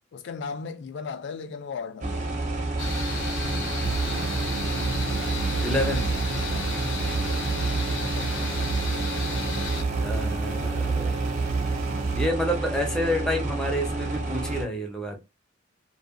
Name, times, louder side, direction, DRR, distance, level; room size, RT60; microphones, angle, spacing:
voice 1, 0.1-2.3 8.1-8.7, left 5 dB, 60° left, 0.3 m, -36 dB
sound 1, 2.0-14.7, right 2 dB, 40° right, 0.6 m, -30 dB
FM noise, 2.8-9.8, left 3 dB, 80° left, 0.9 m, -34 dB
sound 2, 3.8-12.3, right 5 dB, 90° right, 0.3 m, -31 dB
voice 2, 5.6-6.1 10.0-11.2 12.1-15.2, equal, 5° left, 0.6 m, -28 dB
2.6 x 2.2 x 2.4 m
head